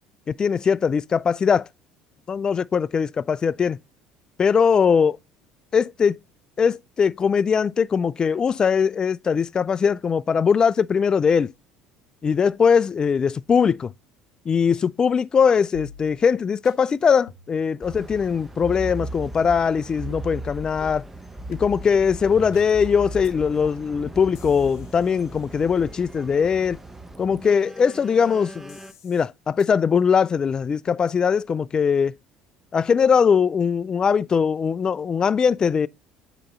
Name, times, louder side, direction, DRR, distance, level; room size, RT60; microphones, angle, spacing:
voice 1, 0.3-1.7 2.3-3.8 4.4-5.2 5.7-6.2 6.6-11.5 12.2-13.9 14.5-21.0 21.5-26.8 27.2-28.8 29.0-32.1 32.7-35.9, left 6 dB, 35° left, 0.3 m, -21 dB
sound 1, 15.7-16.4 16.6-16.8 17.3-17.6 18.0-18.2 18.7-18.9 19.4-19.7 20.1-20.3 20.8-20.9 21.5-21.6 22.0-22.1 22.5-22.8 23.2-23.3 23.6-24.0 24.3-26.2 28.7-29.3 29.6-29.7, left 7 dB, 80° left, 0.9 m, -47 dB
sound 2, 17.8-28.9, right 2 dB, 10° right, 0.7 m, -38 dB
8.6 x 3.0 x 5.4 m
hypercardioid pair, 65°, 2 cm